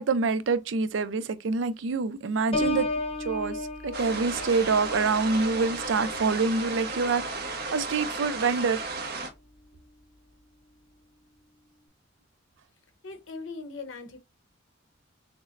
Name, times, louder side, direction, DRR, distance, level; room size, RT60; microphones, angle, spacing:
voice 1, 0.0-2.9 3.2-3.6 3.8-7.2 7.7-8.9, right 4 dB, 70° right, 0.4 m, -26 dB
Piano, 2.5-8.1 8.6-9.0, left 2 dB, 30° left, 0.7 m, -35 dB
sound 1, 3.9-9.3, right 3 dB, 55° right, 0.8 m, -34 dB
voice 2, 13.0-14.2, left 3 dB, 80° left, 0.9 m, -39 dB
5.9 x 2.0 x 2.5 m
head